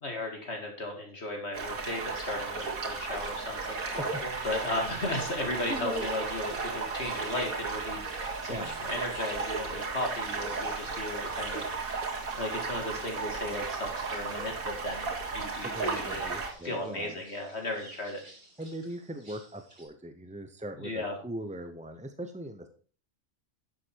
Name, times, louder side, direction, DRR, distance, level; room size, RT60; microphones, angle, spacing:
voice 1, 0.0-16.3 16.6-18.2 20.8-21.1, left 2 dB, 50° left, 2 dB, 2.4 m, -36 dB
sound 1, 1.5-16.5, right 4 dB, 80° right, 2.4 m, -35 dB
sound 2, 2.0-19.8, right 1 dB, 35° right, 2.9 m, -49 dB
voice 2, 3.8-4.2 4.7-5.1 5.7-6.1 8.5-8.9 15.6-17.2 18.6-22.7, right 1 dB, 10° right, 7 dB, 0.4 m, -40 dB
11.5 x 7.5 x 4.5 m, 0.40 s
omnidirectional pair, 1.4 m